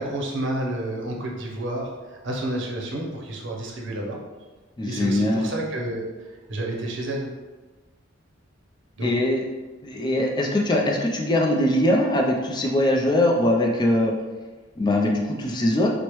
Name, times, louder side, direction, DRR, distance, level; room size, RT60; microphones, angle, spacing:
voice 1, 0.0-4.2 4.8-6.1 6.5-7.3 9.0-9.1, right 1 dB, 65° right, 0 dB, 0.7 m, -30 dB
voice 2, 4.8-5.5 9.0-9.4 9.8-14.1 14.8-15.9, left 1 dB, 20° left, 0 dB, 0.4 m, -21 dB
4.5 x 2.1 x 3.0 m, 1.3 s
head